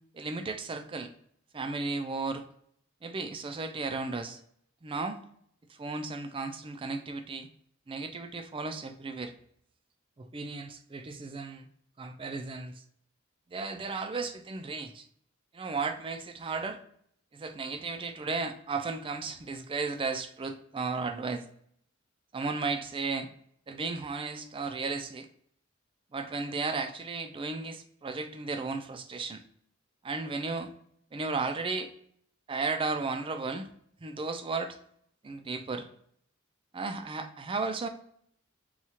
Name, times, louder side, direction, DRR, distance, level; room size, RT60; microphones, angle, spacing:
voice 1, 0.1-1.1 1.5-2.4 3.0-4.4 4.8-5.2 5.7-7.5 7.9-9.3 10.2-11.7 12.0-12.7 13.5-15.1 15.5-16.8 17.3-21.5 22.3-23.3 23.7-25.3 26.1-29.4 30.0-30.7 31.1-31.9 32.5-33.7 34.0-34.8 35.2-35.9 36.7-37.9, right 4 dB, 25° right, 7 dB, 0.4 m, -34 dB
4.3 x 2.4 x 2.7 m, 0.67 s
head